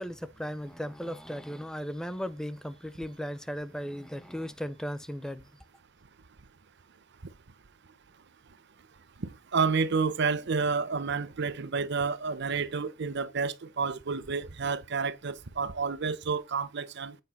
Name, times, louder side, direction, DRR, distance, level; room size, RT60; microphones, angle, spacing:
voice 1, 0.0-5.4, equal, 5° left, 0.5 m, -36 dB
voice 2, 9.2-17.2, right 5 dB, 60° right, 0.7 m, -30 dB
8.2 x 5.6 x 4.1 m
head